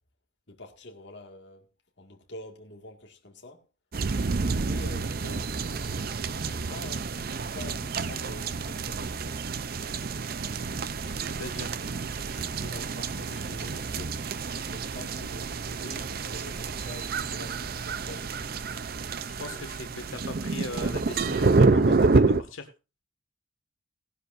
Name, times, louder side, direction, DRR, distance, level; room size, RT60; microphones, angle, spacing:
voice 1, 0.5-1.7 2.0-3.7 4.5-5.5 5.8-9.4 11.9-14.2 14.7-18.5 19.3-19.6, left 2 dB, 60° left, 2.0 m, -46 dB
sound 1, 3.9-22.4, right 4 dB, 45° right, 0.5 m, -28 dB
voice 2, 11.1-11.7 19.4-22.7, left 2 dB, 85° left, 1.8 m, -39 dB
17.5 x 11.5 x 2.6 m
head